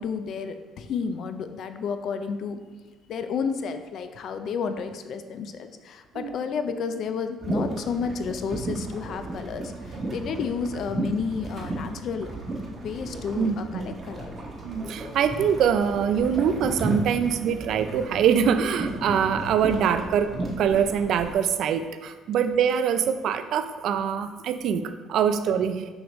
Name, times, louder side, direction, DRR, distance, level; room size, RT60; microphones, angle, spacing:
voice 1, 0.0-2.6 3.1-12.3 12.8-14.3, left 6 dB, 50° left, 8 dB, 0.4 m, -31 dB
sound 1, 7.4-21.3, right 2 dB, 30° right, 1.0 m, -34 dB
voice 2, 14.6-20.3 20.6-25.9, right 7 dB, 55° right, 10 dB, 0.4 m, -24 dB
6.1 x 5.0 x 3.1 m, 1.3 s
cardioid pair, 155°, 0 cm